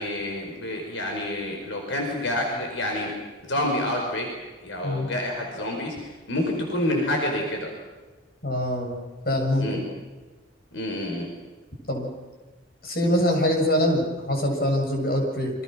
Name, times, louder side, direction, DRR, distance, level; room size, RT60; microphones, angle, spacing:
voice 1, 0.0-3.1 3.4-4.3 4.6-5.9 6.3-7.7 9.6-9.8 10.7-11.3, left 1 dB, 70° left, 1 dB, 5.0 m, -28 dB
voice 2, 8.4-9.0 9.2-9.8 11.9-12.1 12.8-15.5, left 1 dB, 50° left, 2 dB, 7.0 m, -24 dB
28.5 x 25.5 x 6.3 m, 1.3 s
head